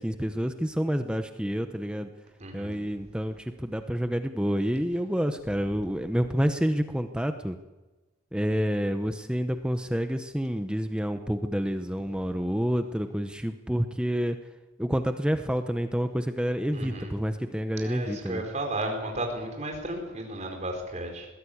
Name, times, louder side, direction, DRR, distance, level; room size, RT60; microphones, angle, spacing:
voice 1, 0.0-2.1 2.5-7.6 8.3-14.4 14.8-18.4, equal, 5° right, 7 dB, 0.8 m, -28 dB
voice 2, 2.4-2.8 16.7-17.1 17.7-21.3, right 1 dB, 35° right, 2 dB, 4.7 m, -33 dB
20.5 x 16.0 x 8.6 m, 1.2 s
head